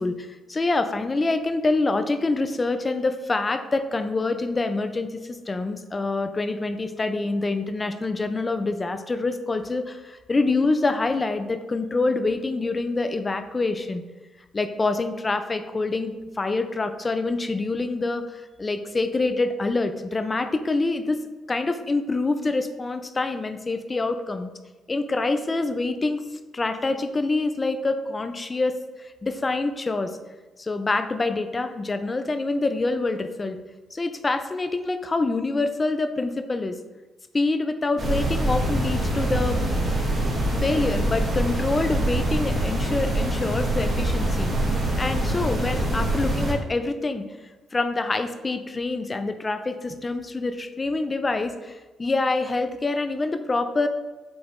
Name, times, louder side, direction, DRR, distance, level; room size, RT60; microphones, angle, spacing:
voice 1, 0.0-14.0 14.5-21.2 21.5-24.5 24.9-26.2 26.5-30.2 30.6-33.6 33.9-36.8 37.3-39.6 40.6-44.5 45.0-47.3 47.7-53.9, left 3 dB, 25° left, 8 dB, 0.5 m, -26 dB
sound 1, 38.0-46.5, right 1 dB, 40° right, 1.8 m, -24 dB
7.8 x 3.4 x 3.6 m, 1.2 s
cardioid pair, 90°, 0 cm